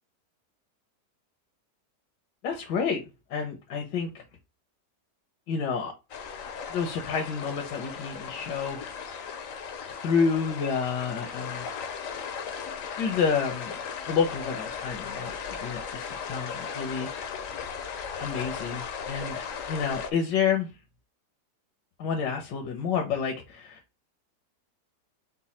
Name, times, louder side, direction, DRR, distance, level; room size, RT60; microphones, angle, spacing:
voice 1, 2.4-3.0 3.3-4.2 5.5-5.9 6.7-9.0 9.9-11.7 13.0-13.7 14.1-15.3 15.6-17.2 18.2-20.7 22.0-23.8, left 6 dB, 80° left, 1.4 m, -29 dB
sound 1, 6.1-20.1, left 6 dB, 65° left, 0.9 m, -37 dB
5.2 x 2.2 x 4.1 m
omnidirectional pair, 1.9 m